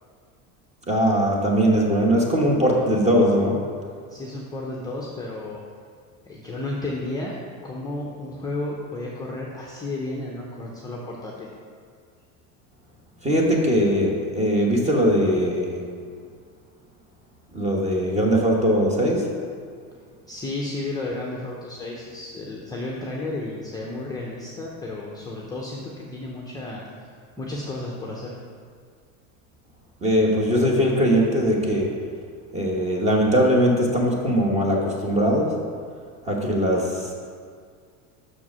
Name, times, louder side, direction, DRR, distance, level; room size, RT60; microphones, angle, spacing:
voice 1, 0.9-3.6 13.2-15.8 17.5-19.3 30.0-31.9 32.5-35.5 36.2-37.1, equal, 15° right, -1 dB, 1.1 m, -20 dB
voice 2, 4.1-5.6 6.3-7.4 7.6-11.5 20.3-26.8 27.4-28.4, left 2 dB, 10° left, -4 dB, 0.6 m, -32 dB
6.2 x 4.7 x 6.1 m, 2.1 s
supercardioid pair, 135°, 40 cm